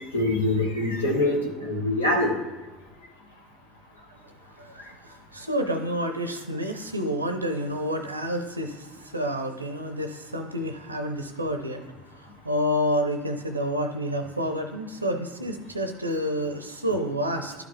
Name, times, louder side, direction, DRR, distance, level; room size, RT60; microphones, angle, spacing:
voice 1, 0.1-2.3, left 1 dB, 80° left, -1 dB, 1.3 m, -24 dB
voice 2, 4.6-17.5, equal, 85° right, 7 dB, 0.5 m, -29 dB
11.5 x 5.0 x 3.2 m, 1.2 s
figure-of-eight pair, 65°, 0 cm